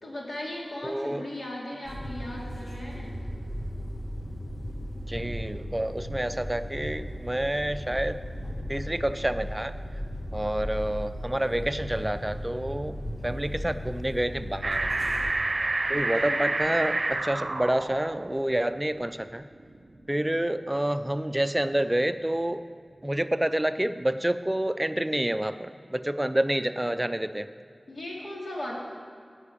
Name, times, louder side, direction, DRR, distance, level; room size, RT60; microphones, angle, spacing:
voice 1, 0.0-3.2 15.9-16.5 27.9-28.8, left 1 dB, 85° left, -3 dB, 2.3 m, -37 dB
voice 2, 0.8-1.3 5.1-8.2 8.7-9.7 10.3-13.0 13.2-14.9 15.9-19.4 20.1-22.6 23.0-27.5, right 1 dB, 20° right, 11 dB, 0.4 m, -28 dB
sound 1, 1.8-15.3, equal, 35° left, 1.6 m, -36 dB
sound 2, 14.6-20.8 21.3-21.4, right 2 dB, 60° right, 0.6 m, -30 dB
10.5 x 5.2 x 8.4 m, 2.2 s
wide cardioid pair, 55°, 0 cm